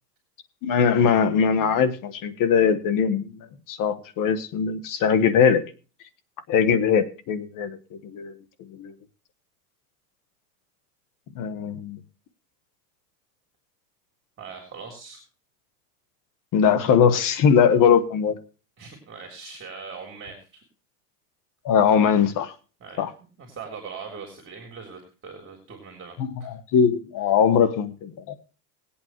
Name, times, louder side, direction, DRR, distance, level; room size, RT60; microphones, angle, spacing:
voice 1, 0.6-3.3 3.7-5.6 6.5-7.8 8.0-8.3 8.7-8.9 11.3-12.0 16.5-18.3 21.6-22.5 23.0-23.1 26.2-28.4, left 7 dB, 45° left, 12 dB, 1.5 m, -21 dB
voice 2, 14.4-15.2 18.8-20.6 22.8-23.0 23.4-26.5, right 5 dB, 25° right, 2 dB, 3.5 m, -41 dB
20.5 x 8.6 x 3.0 m, 0.36 s
supercardioid pair, 110°, 46 cm